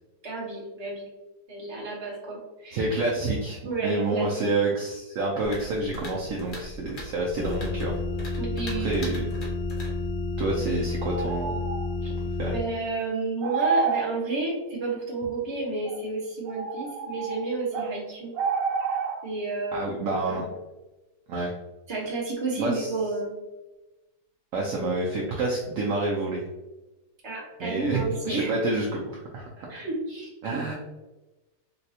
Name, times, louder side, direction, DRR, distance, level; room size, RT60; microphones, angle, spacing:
voice 1, 0.2-1.1 1.5-2.9 3.6-4.3 8.4-9.2 12.0-12.1 12.5-18.3 19.2-20.0 20.3-20.4 21.9-23.3 27.2-28.5 29.7-30.7, right 3 dB, 20° right, -4 dB, 0.7 m, -31 dB
voice 2, 2.7-8.0 8.8-9.2 10.4-11.6 12.4-12.6 19.7-20.4 21.3-21.5 22.6-22.9 24.5-26.5 27.6-28.0 28.3-29.8 30.4-30.7, right 2 dB, 70° right, -3 dB, 0.8 m, -28 dB
sound 1, 3.7-3.8 11.1-11.9 13.4-14.1 15.9-16.0 16.5-17.9 18.3-19.2, right 5 dB, 85° right, 1.2 m, -28 dB
sound 2, 5.4-10.6, equal, 40° left, 0.7 m, -41 dB
sound 3, 7.4-12.6, left 3 dB, 80° left, 0.6 m, -30 dB
4.0 x 2.2 x 2.7 m, 1.1 s
omnidirectional pair, 1.8 m